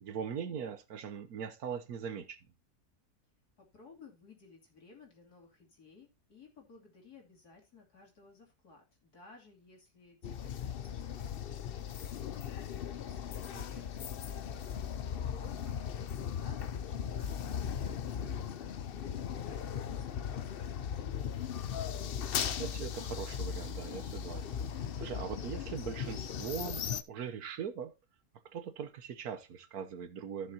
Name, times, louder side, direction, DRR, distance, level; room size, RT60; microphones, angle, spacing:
voice 1, 0.0-2.4 13.5-13.8 22.6-24.5 25.0-27.9 28.4-30.5, right 7 dB, 70° right, 1.4 m, -41 dB
voice 2, 3.6-21.2, left 3 dB, 75° left, 3.3 m, -58 dB
sound 1, 10.2-27.0, left 8 dB, 60° left, 0.6 m, -38 dB
14.5 x 6.6 x 2.8 m
omnidirectional pair, 1.7 m